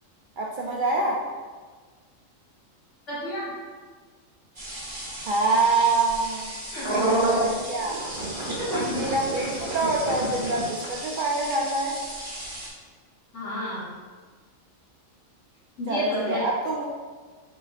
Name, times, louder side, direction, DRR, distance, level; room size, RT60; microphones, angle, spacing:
voice 1, 0.4-1.2 5.3-6.5 7.4-8.0 8.3-8.4 8.7-12.0 15.9-16.8, right 3 dB, 80° right, -2 dB, 0.4 m, -25 dB
voice 2, 3.1-3.5 6.7-7.1 8.6-9.1 13.3-13.9 15.8-16.5, left 1 dB, 65° left, -9 dB, 1.3 m, -31 dB
sound 1, 4.6-12.7, right 1 dB, 30° right, 0.7 m, -30 dB
4.5 x 3.9 x 2.4 m, 1.5 s
omnidirectional pair, 1.4 m